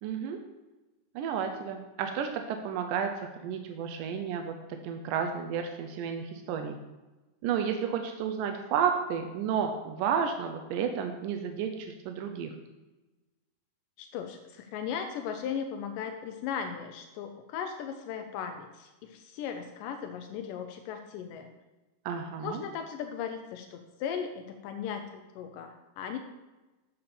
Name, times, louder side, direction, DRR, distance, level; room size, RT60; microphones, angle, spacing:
voice 1, 0.0-0.4 1.2-4.5 4.8-6.8 7.4-12.5 22.1-22.6, right 7 dB, 85° right, 5 dB, 1.9 m, -32 dB
voice 2, 14.0-21.5 22.4-26.2, left 7 dB, 85° left, 5 dB, 1.9 m, -37 dB
9.5 x 6.8 x 4.3 m, 1.1 s
omnidirectional pair, 4.5 m